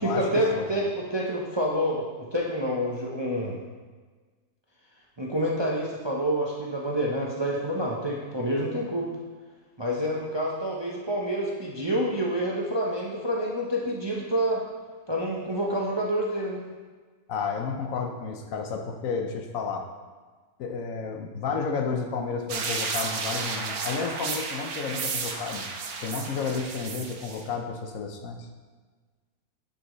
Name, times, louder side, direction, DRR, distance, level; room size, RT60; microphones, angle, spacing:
voice 1, 0.0-3.6 5.2-9.1 9.8-14.6 15.1-16.6, equal, 25° right, -3 dB, 0.6 m, -28 dB
voice 2, 17.3-19.9 20.6-25.6 26.0-28.5, left 5 dB, 70° left, 3 dB, 1.1 m, -31 dB
sound 1, 22.5-27.4, right 4 dB, 80° right, 1.3 m, -32 dB
10.0 x 5.6 x 3.1 m, 1.4 s
omnidirectional pair, 1.6 m